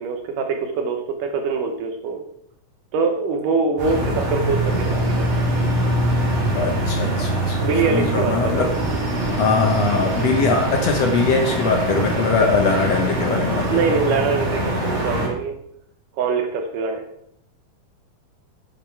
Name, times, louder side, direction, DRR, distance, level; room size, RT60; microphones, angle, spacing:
voice 1, 0.0-2.2 2.9-5.3 7.6-8.8 12.7-12.9 13.7-15.5 16.1-17.0, right 4 dB, 75° right, 5 dB, 2.2 m, -24 dB
sound 1, 3.8-15.3, right 1 dB, 55° right, 5.3 m, -23 dB
voice 2, 6.5-8.7 9.4-13.7, left 4 dB, 70° left, 2 dB, 1.6 m, -21 dB
9.3 x 7.7 x 4.5 m, 0.73 s
omnidirectional pair, 4.3 m